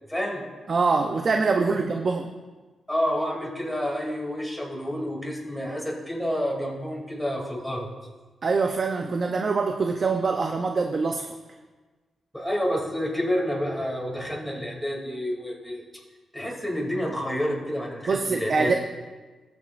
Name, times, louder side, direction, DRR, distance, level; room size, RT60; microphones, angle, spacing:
voice 1, 0.1-0.4 1.7-1.8 2.9-7.9 12.3-15.8 16.3-18.7, equal, 5° left, -2 dB, 2.6 m, -29 dB
voice 2, 0.7-2.3 8.4-11.3 18.1-18.7, right 4 dB, 45° right, 4 dB, 0.6 m, -24 dB
20.5 x 7.1 x 2.5 m, 1.3 s
wide cardioid pair, 120°, 0 cm